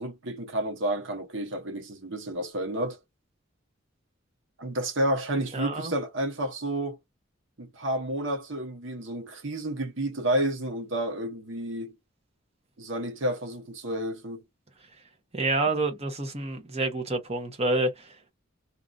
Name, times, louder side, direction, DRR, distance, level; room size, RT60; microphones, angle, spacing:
voice 1, 0.0-3.0 4.6-7.0 7.6-11.9 12.8-14.4, right 1 dB, 70° right, 1.0 m, -30 dB
voice 2, 5.5-5.9 15.3-18.2, right 2 dB, 35° right, 1.0 m, -28 dB
2.9 x 2.4 x 2.4 m
head